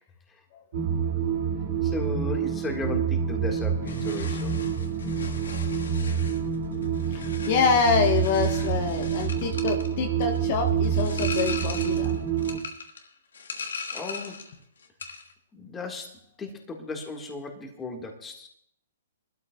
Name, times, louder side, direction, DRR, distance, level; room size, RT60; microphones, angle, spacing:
sound 1, 0.7-12.6, right 7 dB, 50° right, 1.8 m, -27 dB
voice 1, 1.8-4.6 13.9-14.4 15.5-18.5, left 2 dB, 10° left, 2 dB, 1.7 m, -36 dB
sound 2, 3.8-14.6 14.8-15.3, left 5 dB, 85° left, 1.7 m, -39 dB
voice 2, 7.1-12.2, left 5 dB, 40° left, 3 dB, 1.1 m, -26 dB
23.5 x 12.5 x 2.3 m, 0.67 s
hypercardioid pair, 150°, 0 cm